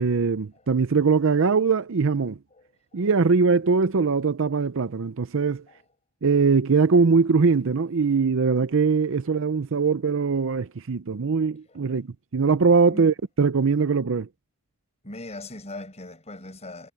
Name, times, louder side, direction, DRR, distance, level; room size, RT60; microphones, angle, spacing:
voice 1, 0.0-2.4 2.9-5.6 6.2-12.1 12.3-14.3, right 4 dB, 60° right, 0.6 m, -21 dB
voice 2, 2.5-3.1 5.7-5.8 9.8-9.9 10.5-10.6 11.7-11.8 12.9-13.1 15.0-16.9, left 2 dB, 30° left, 6.4 m, -41 dB
head